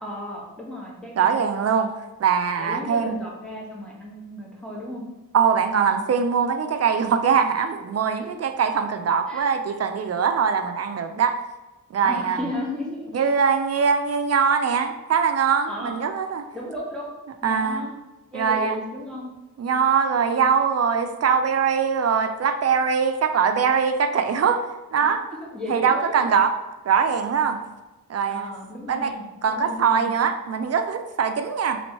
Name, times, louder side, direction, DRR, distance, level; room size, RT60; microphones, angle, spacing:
voice 1, 0.0-1.4 2.6-5.0 8.1-8.2 9.3-9.6 12.0-13.2 15.7-15.9 16.5-17.1 17.4-17.9 18.3-19.3 25.0-25.1 25.4-26.3 28.2-30.1, left 1 dB, ahead, -4 dB, 1.1 m, -34 dB
voice 2, 1.2-1.9 2.2-3.3 5.3-11.4 11.9-12.4 13.1-16.5 17.4-17.8 18.3-18.8 19.6-24.6 24.9-25.2 25.7-26.5 26.9-27.6 28.1-28.5 28.9-29.1 29.4-31.8, right 6 dB, 45° right, 7 dB, 0.4 m, -22 dB
3.4 x 3.0 x 2.9 m, 1.1 s
cardioid pair, 70°, 35 cm